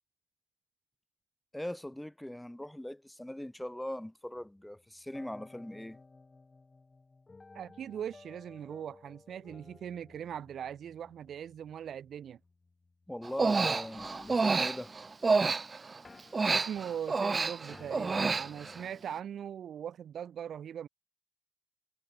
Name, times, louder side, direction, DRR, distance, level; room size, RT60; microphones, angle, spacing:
voice 1, 1.5-6.0 13.1-14.9, left 1 dB, 5° left, 3.1 m, -40 dB
sound 1, 4.4-15.6 16.0-17.3 17.7-19.1, left 3 dB, 30° left, 7.8 m, -56 dB
voice 2, 7.5-12.4 16.5-20.9, right 9 dB, 60° right, 1.1 m, -40 dB
Human voice, 13.2-16.0 16.3-18.8, right 4 dB, 35° right, 0.8 m, -29 dB
supercardioid pair, 55°, 0 cm